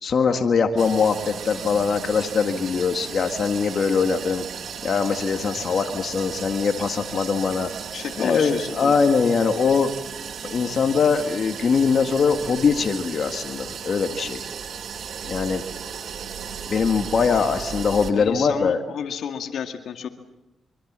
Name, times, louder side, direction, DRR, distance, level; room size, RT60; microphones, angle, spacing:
voice 1, 0.0-4.4 4.8-7.7 8.2-9.9 10.4-14.4 15.2-15.6 16.7-18.8, left 5 dB, 60° left, 6 dB, 1.8 m, -22 dB
sound 1, 0.8-18.1, right 7 dB, 75° right, 2.2 m, -35 dB
voice 2, 7.9-9.0 18.1-20.1, left 8 dB, 80° left, 6 dB, 2.1 m, -31 dB
25.0 x 24.0 x 7.5 m, 0.93 s
cardioid pair, 60°, 0 cm